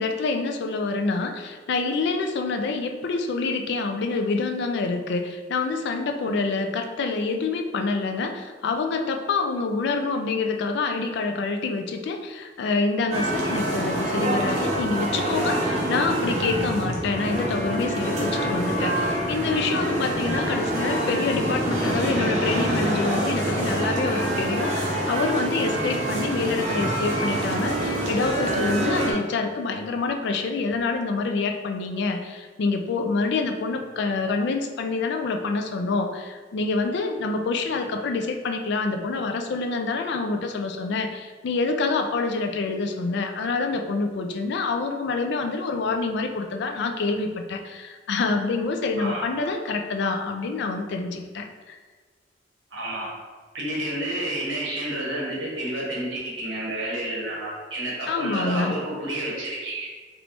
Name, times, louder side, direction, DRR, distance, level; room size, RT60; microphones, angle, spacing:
voice 1, 0.0-51.8 58.1-58.8, left 3 dB, 60° left, 5 dB, 0.3 m, -27 dB
sound 1, 13.1-29.1, right 1 dB, 35° right, 0.7 m, -26 dB
voice 2, 52.7-53.1 53.5-59.9, right 1 dB, 75° right, -5 dB, 1.1 m, -30 dB
3.3 x 3.0 x 2.5 m, 1.4 s
head